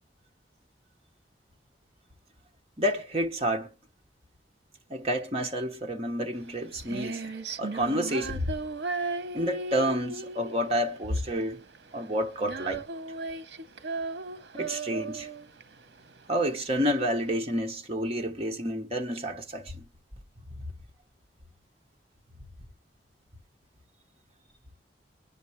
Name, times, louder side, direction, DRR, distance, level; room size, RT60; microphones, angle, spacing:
voice 1, 2.8-3.7 4.9-7.3 7.6-8.5 9.3-11.6 11.9-12.8 14.5-15.3 16.3-19.9, equal, 35° right, 1.1 m, -29 dB
Female singing, 6.4-17.3, right 3 dB, 80° right, 0.8 m, -36 dB
23.5 x 10.0 x 3.1 m
head